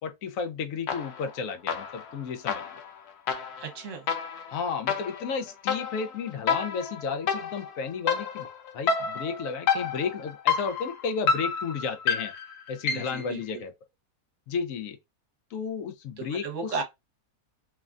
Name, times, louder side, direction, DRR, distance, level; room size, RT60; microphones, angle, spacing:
voice 1, 0.0-2.8 4.5-12.3 12.7-13.7 14.5-15.0 15.5-16.8, left 5 dB, 70° left, 0.9 m, -33 dB
sound 1, 0.9-1.3 1.7-13.3, left 6 dB, 85° left, 1.2 m, -30 dB
voice 2, 3.6-4.1 12.9-13.4 16.2-16.8, right 4 dB, 60° right, 1.1 m, -34 dB
3.2 x 2.2 x 2.4 m
omnidirectional pair, 1.6 m